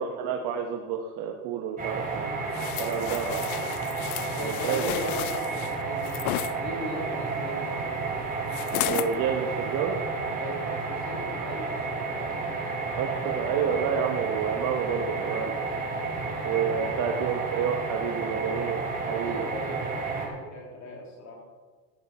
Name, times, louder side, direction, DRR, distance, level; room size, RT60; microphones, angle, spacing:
voice 1, 0.0-2.4 2.8-3.5 4.4-4.9 8.8-10.0 13.0-15.5 16.4-18.8 19.1-19.4, right 7 dB, 50° right, 3 dB, 1.3 m, -29 dB
sound 1, 1.8-20.3, right 3 dB, 20° right, 3.5 m, -31 dB
sound 2, 2.5-6.5 8.5-9.1 9.7-9.8, left 16 dB, 85° left, 0.6 m, -33 dB
voice 2, 4.3-6.3 6.6-8.2 10.2-12.5 16.7-17.3 19.1-21.5, equal, 40° left, 0 dB, 3.2 m, -39 dB
14.0 x 9.4 x 4.3 m, 1.5 s
supercardioid pair, 105°, 44 cm